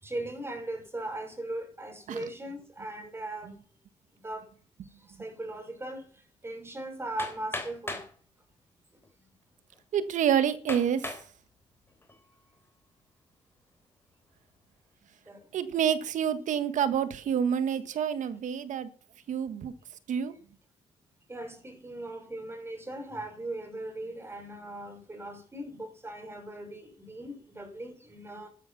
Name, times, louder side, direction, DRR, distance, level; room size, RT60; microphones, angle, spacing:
voice 1, 0.0-3.5 4.1-4.5 5.1-8.0 15.3-15.6 21.3-28.5, right 1 dB, 20° right, 6.4 m, -39 dB
Hammer, 7.2-8.1 9.0-9.1 9.7-9.8 10.7-11.3 11.9-12.3, left 2 dB, 20° left, 3.6 m, -37 dB
voice 2, 9.9-11.1 15.5-18.9 19.3-19.7 20.1-20.3, right 8 dB, 70° right, 1.6 m, -28 dB
12.5 x 12.5 x 6.0 m
cardioid pair, 95°, 13 cm